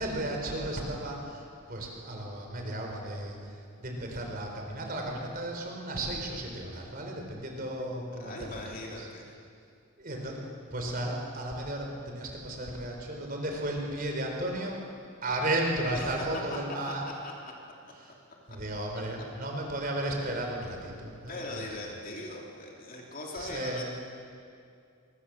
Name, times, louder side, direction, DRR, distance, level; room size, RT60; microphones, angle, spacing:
voice 1, 0.0-9.1 10.0-10.4 10.7-14.8 15.2-17.0 18.0-18.1 18.5-21.7 23.3-23.9, right 1 dB, 40° right, 1 dB, 4.1 m, -34 dB
voice 2, 8.2-9.2 15.9-16.0 17.2-17.3 21.3-23.9, left 2 dB, 40° left, -1 dB, 3.1 m, -40 dB
22.5 x 21.5 x 7.4 m, 2.3 s
head